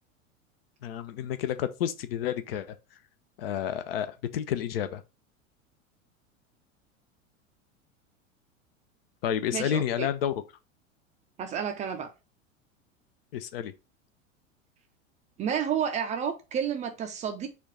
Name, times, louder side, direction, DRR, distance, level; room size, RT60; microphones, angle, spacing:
voice 1, 0.8-2.7 3.4-4.1 4.3-5.0 9.2-10.3 13.3-13.7, left 10 dB, 50° left, 0.5 m, -30 dB
voice 2, 9.5-10.1 11.4-12.1 15.4-17.5, right 8 dB, 20° right, 0.4 m, -30 dB
4.3 x 2.3 x 4.0 m
figure-of-eight pair, 85°, 40 cm